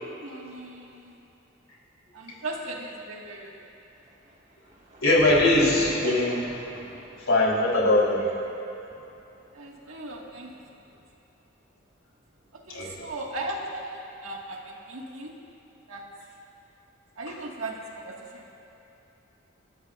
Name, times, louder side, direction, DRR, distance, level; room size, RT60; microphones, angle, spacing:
voice 1, 0.1-1.2 2.1-3.6 6.0-6.2 8.4-8.5 9.5-10.8 12.5-15.3 15.9-16.0 17.2-18.5, right 2 dB, 75° right, -1 dB, 1.9 m, -37 dB
Thunder, 4.0-11.2 12.2-14.0, right 1 dB, 35° right, 1.8 m, -45 dB
voice 2, 5.0-6.4 7.2-8.3 12.7-13.1 17.3-17.4, left 2 dB, 75° left, -4 dB, 3.6 m, -22 dB
30.0 x 13.0 x 2.5 m, 2.9 s
head